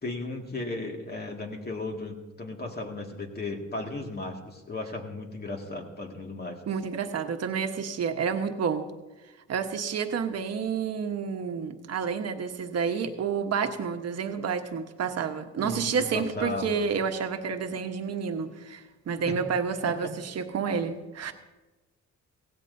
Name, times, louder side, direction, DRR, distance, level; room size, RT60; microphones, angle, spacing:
voice 1, 0.0-6.6 15.6-16.9 19.3-19.4 19.9-20.1, left 2 dB, 30° left, 1 dB, 2.2 m, -35 dB
voice 2, 6.7-8.9 9.5-21.3, right 6 dB, 55° right, 6 dB, 1.3 m, -29 dB
16.5 x 16.5 x 2.8 m, 1.2 s
cardioid pair, 90°, 30 cm